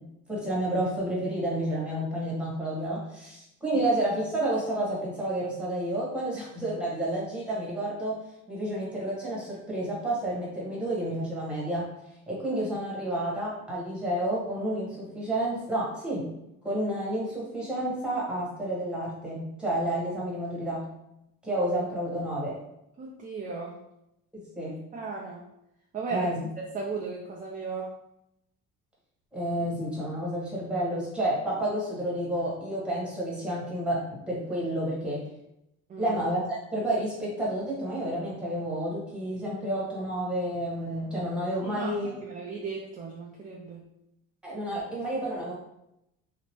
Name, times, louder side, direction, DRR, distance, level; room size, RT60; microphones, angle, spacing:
voice 1, 0.3-8.2 8.5-11.9 12.3-16.3 16.6-20.8 21.4-22.5 24.3-24.8 26.1-26.5 29.3-35.2 36.0-42.1 44.4-45.5, right 1 dB, 5° right, -6 dB, 1.2 m, -30 dB
voice 2, 23.0-23.8 24.9-25.5 25.9-26.3 26.7-27.9 35.9-36.2 41.6-43.9, right 4 dB, 25° right, -1 dB, 0.4 m, -36 dB
2.9 x 2.1 x 3.0 m, 0.84 s
supercardioid pair, 95°, 36 cm